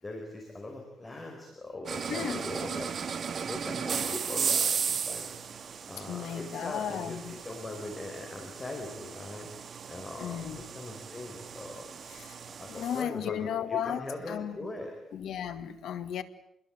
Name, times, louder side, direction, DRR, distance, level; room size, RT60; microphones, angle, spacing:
voice 1, 0.0-2.9 3.4-5.4 5.9-9.5 9.9-11.8 12.4-14.9, left 2 dB, 20° left, 4.8 m, -41 dB
sound 1, 1.9-13.0, right 6 dB, 45° right, 1.9 m, -35 dB
voice 2, 2.1-2.4 6.0-7.4 10.2-10.6 12.1-12.3 12.7-14.7 15.1-16.2, left 9 dB, 75° left, 2.1 m, -35 dB
27.5 x 21.5 x 8.9 m
cardioid pair, 145°, 0 cm